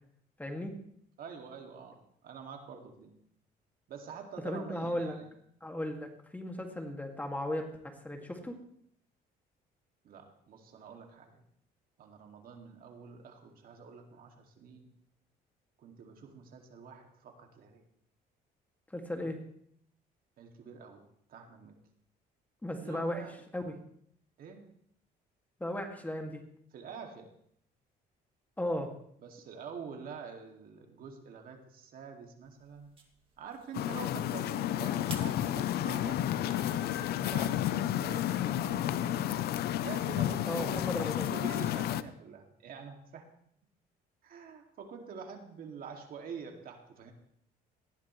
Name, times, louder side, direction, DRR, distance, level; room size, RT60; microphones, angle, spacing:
voice 1, 0.4-0.7 4.4-5.2 5.6-8.5 18.9-19.4 22.6-23.2 23.5-23.7 25.6-26.4 28.6-28.9 40.5-41.3, left 1 dB, 10° left, 3 dB, 2.2 m, -36 dB
voice 2, 1.2-3.1 3.9-5.3 10.0-11.4 12.0-14.9 15.8-17.9 19.2-19.3 20.4-21.0 21.3-21.7 22.8-23.4 24.4-24.6 26.7-27.3 29.2-32.9 33.4-39.3 39.8-43.3 44.2-47.1, right 6 dB, 60° right, 3 dB, 2.3 m, -47 dB
sound 1, 32.4-41.3, right 4 dB, 30° right, 2.3 m, -56 dB
sound 2, 33.7-42.0, left 12 dB, 70° left, 0.7 m, -31 dB
18.5 x 14.5 x 3.2 m, 0.68 s
cardioid pair, 110°, 17 cm